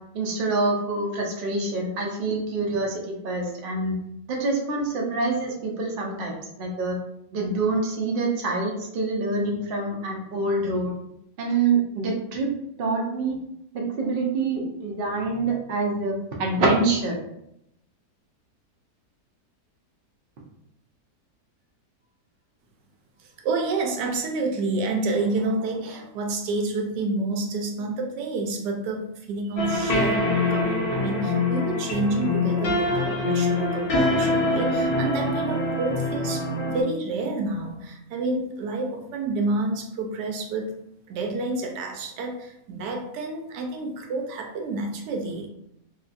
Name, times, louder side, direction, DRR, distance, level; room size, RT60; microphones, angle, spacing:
voice 1, 0.1-3.9 4.3-7.0 7.3-10.9 11.4-12.5 12.8-13.4 13.7-17.2, right 3 dB, 60° right, -1 dB, 0.5 m, -26 dB
voice 2, 23.4-40.7 41.1-45.5, right 2 dB, 80° right, 2 dB, 1.2 m, -29 dB
sound 1, 29.6-36.8, left 2 dB, 85° left, 0.5 m, -24 dB
3.1 x 2.8 x 2.5 m, 0.78 s
omnidirectional pair, 1.8 m